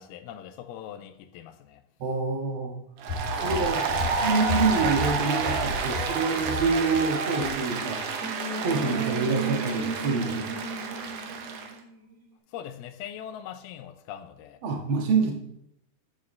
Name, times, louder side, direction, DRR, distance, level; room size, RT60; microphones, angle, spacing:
voice 1, 0.0-1.8 12.5-14.6, left 10 dB, 85° left, 2.6 m, -41 dB
voice 2, 2.0-2.8 3.3-3.9 4.1-8.0 8.6-10.6 14.6-15.3, right 4 dB, 55° right, 1.5 m, -27 dB
Applause, 3.0-11.7, right 5 dB, 85° right, 1.4 m, -30 dB
sound 1, 3.1-7.1 7.4-7.5, left 4 dB, 55° left, 2.5 m, -34 dB
sound 2, 7.3-12.2, right 3 dB, 30° right, 2.8 m, -35 dB
11.5 x 8.2 x 3.2 m
omnidirectional pair, 4.4 m